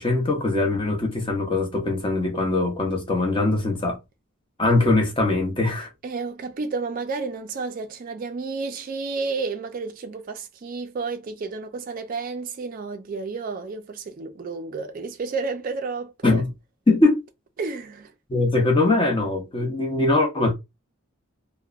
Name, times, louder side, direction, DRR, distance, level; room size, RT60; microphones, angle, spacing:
voice 1, 0.0-4.0 4.6-5.9 16.2-16.5 16.9-17.2 18.3-20.5, left 2 dB, 25° left, 0.6 m, -21 dB
voice 2, 6.0-16.4 17.6-18.1, right 4 dB, 40° right, 0.3 m, -31 dB
2.8 x 2.1 x 2.3 m
head